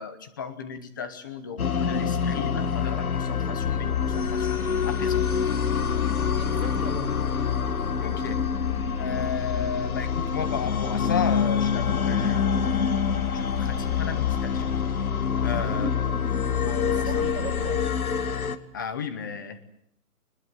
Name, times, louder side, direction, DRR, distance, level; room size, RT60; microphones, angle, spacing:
voice 1, 0.0-4.6 4.9-5.4 8.0-8.4 9.0-13.1 13.3-14.7 15.4-15.9 16.5-17.6 18.7-19.6, left 6 dB, 15° left, 10 dB, 0.9 m, -35 dB
sound 1, 1.6-18.6, left 7 dB, 65° left, 2.0 m, -26 dB
sound 2, 3.6-17.7, left 4 dB, 40° left, 4.6 m, -34 dB
voice 2, 6.4-7.2 15.4-15.9 16.9-18.0, right 3 dB, 65° right, 6 dB, 7.5 m, -37 dB
21.5 x 20.5 x 9.3 m, 0.67 s
hypercardioid pair, 170°, 45 cm